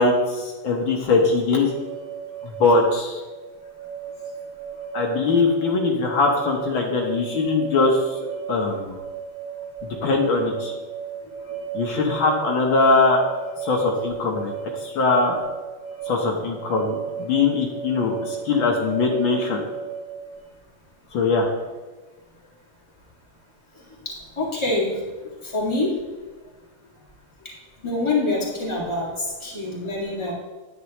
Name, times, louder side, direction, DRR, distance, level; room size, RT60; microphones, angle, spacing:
voice 1, 0.0-1.7 2.4-3.2 4.9-8.1 8.5-9.0 10.0-10.7 11.7-13.2 13.6-14.5 14.8-15.4 16.1-19.6 21.1-21.5, left 3 dB, 70° left, 0 dB, 1.8 m, -21 dB
sound 1, 1.6-20.4, right 6 dB, 40° left, 1.0 m, -35 dB
voice 2, 24.1-24.9 25.4-25.9 27.4-27.5 27.8-30.3, left 2 dB, 15° left, -5 dB, 2.1 m, -25 dB
9.7 x 9.4 x 3.0 m, 1.3 s
omnidirectional pair, 2.3 m